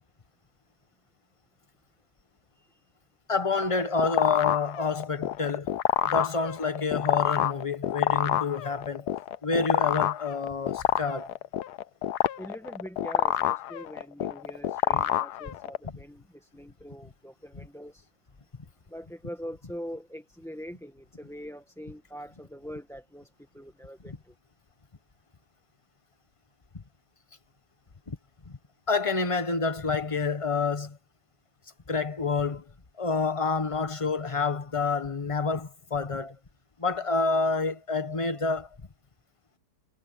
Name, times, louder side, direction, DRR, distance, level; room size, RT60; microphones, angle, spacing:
voice 1, 3.3-5.7 6.0-9.1 9.4-11.3 28.1-28.2 28.5-28.6 28.9-31.0 31.9-32.6 33.0-36.4 36.8-38.7, left 4 dB, 20° left, 1.2 m, -28 dB
sound 1, 3.5-15.9, left 12 dB, 85° left, 1.3 m, -27 dB
voice 2, 12.4-18.1 18.9-24.3, equal, ahead, 1.5 m, -43 dB
omnidirectional pair, 1.7 m